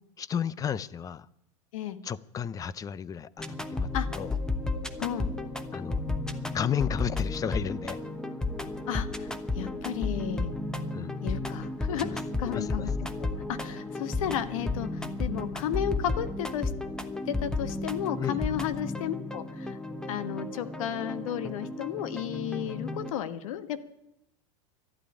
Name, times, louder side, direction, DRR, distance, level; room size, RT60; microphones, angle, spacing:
voice 1, 0.2-1.3 2.0-3.4 3.7-3.9 4.1-4.3 5.7-6.0 6.5-8.0 10.9-11.2 12.0-12.2 12.4-12.9 18.2-18.4, left 8 dB, 20° left, 19 dB, 0.5 m, -33 dB
sound 1, 3.4-23.1, left 2 dB, 5° left, 1.0 m, -33 dB
voice 2, 5.0-5.3 8.9-10.5 11.2-12.9 13.2-16.7 17.3-19.8 20.1-23.8, left 10 dB, 75° left, 11 dB, 1.5 m, -33 dB
12.5 x 11.5 x 9.8 m, 0.84 s
supercardioid pair, 130°, 17 cm